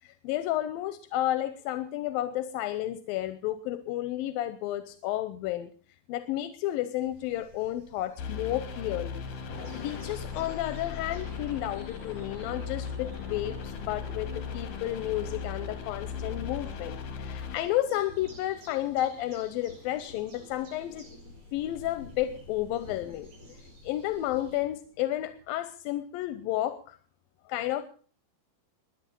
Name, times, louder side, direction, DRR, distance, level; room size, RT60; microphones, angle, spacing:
voice 1, 0.0-5.7 6.1-9.2 9.8-21.1 21.5-23.6 23.8-27.0 27.5-27.8, left 14 dB, 85° left, 11 dB, 2.6 m, -32 dB
sound 1, 7.0-24.6, equal, 90° right, 8.4 m, -55 dB
sound 2, 8.2-17.6, left 6 dB, 70° left, 3.6 m, -38 dB
Thunder / Rain, 9.3-25.6, left 2 dB, 45° left, 4.8 m, -49 dB
22.0 x 9.0 x 5.3 m, 0.43 s
omnidirectional pair, 4.0 m